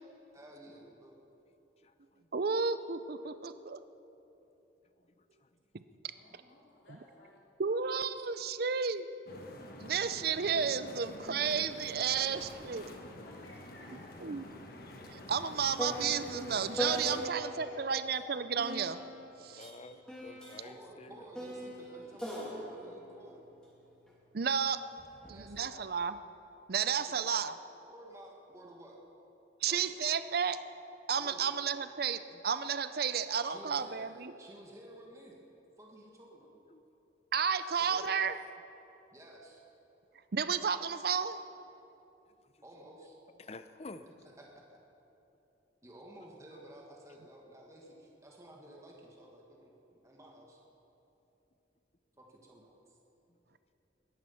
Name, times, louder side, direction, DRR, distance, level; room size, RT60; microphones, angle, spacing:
voice 1, 0.3-1.2 20.6-23.5 25.2-26.0 27.0-27.2 27.9-29.0 29.6-30.0 31.2-31.6 33.4-35.4 35.8-36.5 39.1-39.6 42.6-43.1 44.4-44.8 45.8-50.6 52.2-53.0, right 1 dB, 15° right, -2 dB, 1.7 m, -53 dB
voice 2, 2.3-3.8 6.9-7.0 7.6-9.1 9.8-12.8 14.2-14.5 15.1-19.0 19.4-19.7 24.3-24.8 25.3-26.2 26.7-27.5 29.6-30.6 31.1-34.3 37.3-38.4 40.3-41.4, right 6 dB, 50° right, 12 dB, 0.5 m, -32 dB
voice 3, 6.1-7.4 12.1-12.5 12.8-14.2 17.0-18.0, left 2 dB, 70° left, -3 dB, 3.6 m, -56 dB
sound 1, 9.3-17.3, left 1 dB, 50° left, 1.4 m, -48 dB
sound 2, 12.4-12.6 12.9-17.7 18.6-24.1 25.0-25.4, equal, 5° left, 2.9 m, -41 dB
voice 4, 19.5-21.3 32.3-32.4 36.7-36.8 37.9-38.2 43.4-44.1 46.5-46.7, left 2 dB, 35° left, 11 dB, 0.6 m, -50 dB
21.0 x 11.0 x 5.7 m, 3.0 s
head